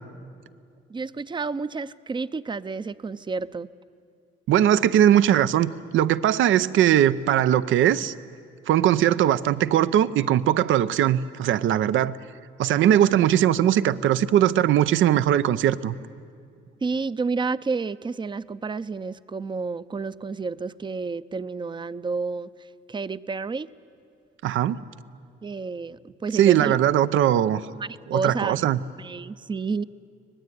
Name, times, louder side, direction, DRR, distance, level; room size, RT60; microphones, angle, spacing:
voice 1, 0.9-3.7 16.8-22.5 22.9-23.7 25.4-26.8 27.8-28.7 29.0-29.8, right 4 dB, 25° right, 15 dB, 0.6 m, -30 dB
voice 2, 4.5-8.1 8.7-12.2 12.6-16.0 24.4-24.8 26.3-27.6 28.1-28.8, right 11 dB, 80° right, 15 dB, 0.7 m, -20 dB
24.5 x 19.0 x 9.4 m, 2.2 s
cardioid pair, 90°, 20 cm